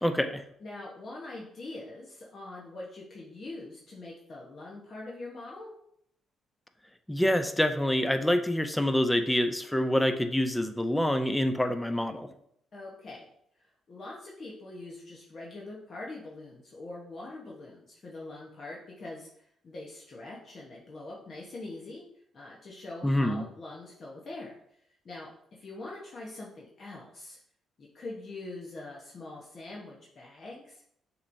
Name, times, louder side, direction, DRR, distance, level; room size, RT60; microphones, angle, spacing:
voice 1, 0.0-0.4 7.1-12.3 23.0-23.5, left 1 dB, 5° left, 8 dB, 0.5 m, -26 dB
voice 2, 0.6-5.7 12.7-13.3 13.6-27.4 27.8-30.8, left 2 dB, 45° left, -4 dB, 1.0 m, -43 dB
6.6 x 3.1 x 2.6 m, 0.70 s
cardioid pair, 90°, 0 cm